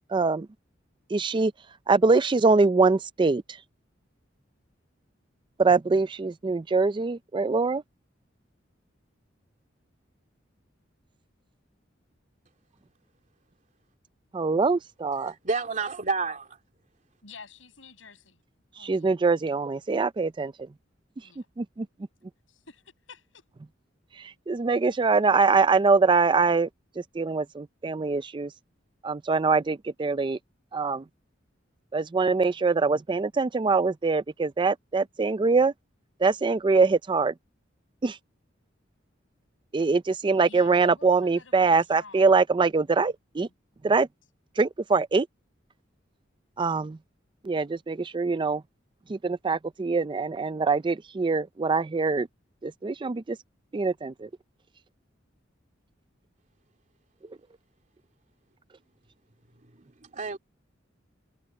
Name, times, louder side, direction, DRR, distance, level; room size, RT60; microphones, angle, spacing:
voice 1, 0.1-0.5 1.1-1.5 1.9-3.4 5.6-7.8 14.3-15.3 18.8-20.7 21.6-21.9 24.2-26.7 27.0-28.5 29.0-30.4 30.7-31.0 31.9-35.7 36.2-37.3 38.0-38.2 39.7-43.5 43.8-44.1 44.6-45.3 46.6-47.0 47.4-48.6 49.1-52.3 52.6-53.4 53.7-54.3, right 4 dB, 25° right, 0.4 m, -23 dB
voice 2, 15.2-16.6 59.5-60.4, right 4 dB, 40° right, 2.8 m, -31 dB
voice 3, 17.2-18.4 18.7-19.1 21.2-21.5 22.5-23.4 40.5-42.3, left 4 dB, 90° left, 7.0 m, -50 dB
head